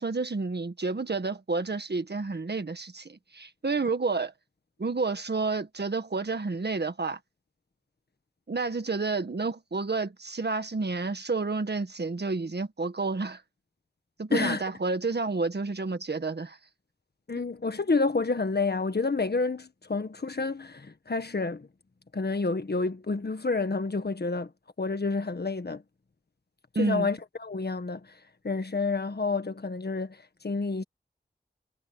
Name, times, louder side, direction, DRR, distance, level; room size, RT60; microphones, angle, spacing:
voice 1, 0.0-4.3 4.8-7.2 8.5-13.4 14.2-16.6 26.7-27.1, right 3 dB, 65° right, 1.7 m, -30 dB
voice 2, 14.3-14.6 17.3-21.7 22.1-24.5 24.8-25.8 26.8-28.1 28.4-30.8, left 3 dB, 65° left, 1.6 m, -29 dB
wide cardioid pair, 60°, 18 cm